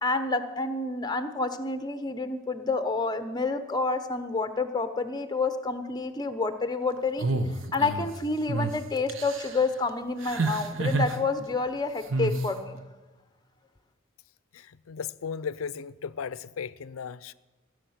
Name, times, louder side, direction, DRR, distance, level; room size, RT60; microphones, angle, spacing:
voice 1, 0.0-7.3 7.7-12.8, left 3 dB, 20° left, 0.8 m, -29 dB
sound 1, 7.2-8.1 8.5-8.7 9.1-9.6 10.2-11.2 12.1-12.5, right 3 dB, 70° right, 1.1 m, -28 dB
voice 2, 14.5-17.3, left 6 dB, 90° left, 0.5 m, -36 dB
17.0 x 6.5 x 9.3 m
head